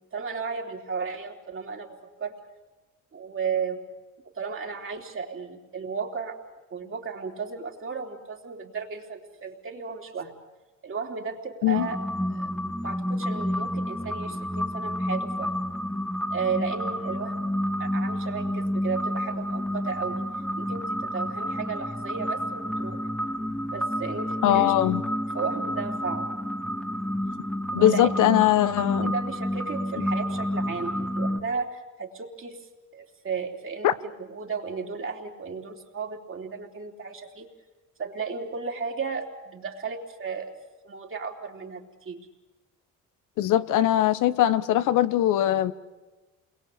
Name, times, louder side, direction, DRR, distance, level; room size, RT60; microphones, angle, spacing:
voice 1, 0.0-2.4 3.1-3.8 4.4-6.4 6.7-10.3 10.8-12.0 12.3-12.5 12.8-15.5 16.3-17.5 17.8-20.2 20.6-23.0 23.7-24.7 25.3-26.3 27.8-28.3 29.0-37.5 38.0-40.5 40.8-42.2, right 5 dB, 45° right, 2 dB, 3.6 m, -34 dB
sound 1, 11.7-31.4, equal, 5° left, 1.7 m, -30 dB
voice 2, 24.4-25.0 27.7-29.1 33.8-33.9 43.4-45.7, left 13 dB, 85° left, 13 dB, 1.0 m, -21 dB
28.5 x 22.0 x 8.6 m, 1.2 s
cardioid pair, 90°, 30 cm